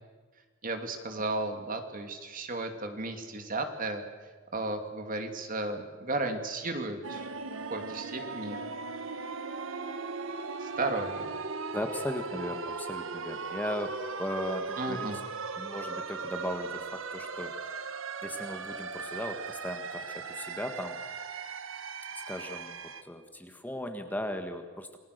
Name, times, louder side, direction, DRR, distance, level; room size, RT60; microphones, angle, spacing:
voice 1, 0.6-4.0 4.5-7.3 7.7-8.6 10.6-11.3 14.8-15.2, right 2 dB, 45° right, 5 dB, 2.6 m, -34 dB
sound 1, 7.0-23.0, right 4 dB, 85° right, 1.4 m, -38 dB
voice 2, 11.7-15.1 15.6-17.8 18.2-21.0 22.1-25.0, equal, 10° left, 6 dB, 1.6 m, -37 dB
28.5 x 20.0 x 6.7 m, 1.4 s
head